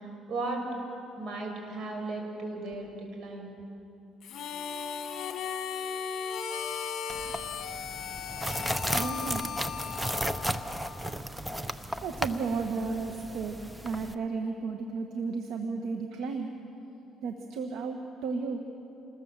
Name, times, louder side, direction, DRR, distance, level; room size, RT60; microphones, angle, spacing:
voice 1, 0.3-0.6 1.1-2.9 3.2-3.6, right 3 dB, 60° right, 2 dB, 6.0 m, -35 dB
Harmonica, 4.2-11.1, left 7 dB, 60° left, 1.6 m, -37 dB
sound 1, 7.1-14.1, equal, 5° right, 1.0 m, -35 dB
voice 2, 8.8-9.5 12.0-13.6 13.8-16.5 17.2-18.6, right 4 dB, 75° right, 4 dB, 1.6 m, -33 dB
28.0 x 21.0 x 7.6 m, 2.9 s
cardioid pair, 110°, 0 cm